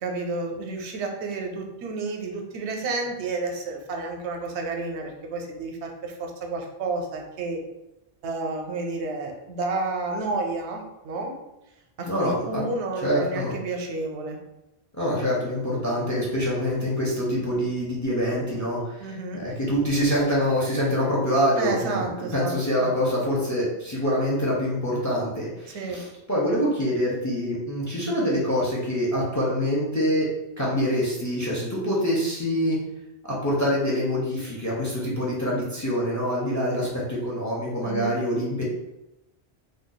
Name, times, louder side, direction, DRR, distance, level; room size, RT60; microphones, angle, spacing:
voice 1, 0.0-7.6 8.2-11.3 12.0-14.4 19.0-19.4 21.6-22.6 25.7-26.0 37.8-38.2, right 3 dB, 85° right, 2 dB, 0.9 m, -31 dB
voice 2, 12.0-12.6 13.0-13.5 14.9-30.3 30.6-32.8 33.4-38.6, equal, 20° left, -5 dB, 0.5 m, -25 dB
2.5 x 2.3 x 3.8 m, 0.94 s
omnidirectional pair, 1.1 m